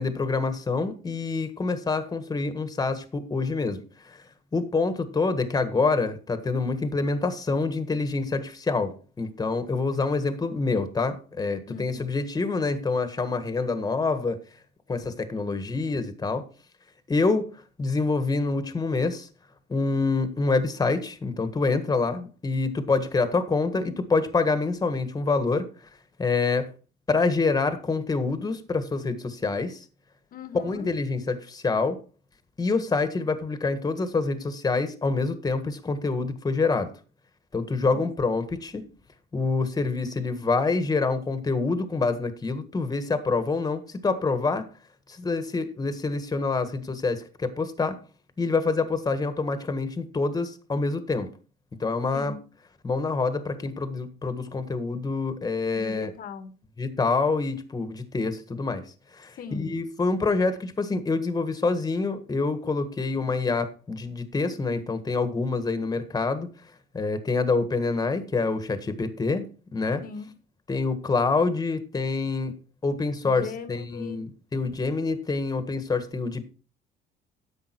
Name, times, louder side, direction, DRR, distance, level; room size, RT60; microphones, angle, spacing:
voice 1, 0.0-4.2 4.5-14.4 14.9-16.5 17.1-17.5 17.8-19.3 19.7-25.7 26.2-26.7 27.1-29.8 30.5-32.0 32.6-36.9 37.5-38.8 39.3-44.7 45.1-48.0 48.4-51.3 51.8-52.3 52.8-56.1 56.8-58.8 59.1-66.5 66.9-69.5 69.7-70.0 70.7-72.5 72.8-76.4, left 3 dB, 20° left, 1.6 m, -26 dB
voice 2, 11.7-12.0 30.3-30.9 37.8-38.1 52.1-52.4 55.7-56.5 59.4-59.7 70.0-70.3 73.2-74.2, left 5 dB, 60° left, 1.4 m, -39 dB
10.5 x 7.7 x 4.6 m
cardioid pair, 110°, 17 cm